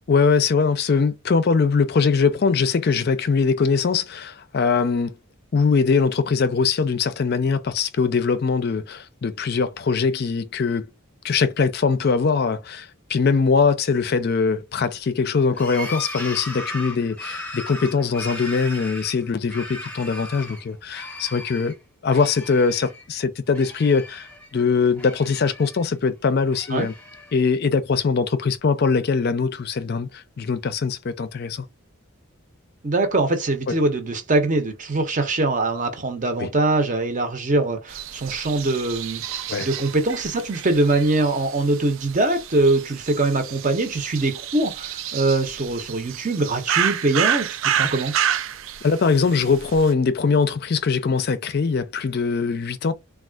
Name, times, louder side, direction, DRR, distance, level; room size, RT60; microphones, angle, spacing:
voice 1, 0.1-5.1 5.5-10.9 11.2-21.7 22.0-24.3 24.5-26.9 27.3-31.7 33.7-33.8 36.4-36.5 39.5-39.7 48.8-52.9, left 5 dB, 50° left, 0.4 m, -22 dB
sound 1, 15.5-20.6 20.9-21.7 22.1-23.1 23.3-24.5 24.9-25.9 26.4-27.4, left 1 dB, 10° left, 0.7 m, -37 dB
voice 2, 32.8-48.1, right 2 dB, 35° right, 0.7 m, -23 dB
sound 2, 37.9-49.9, right 9 dB, 70° right, 0.4 m, -29 dB
3.4 x 2.3 x 2.3 m
head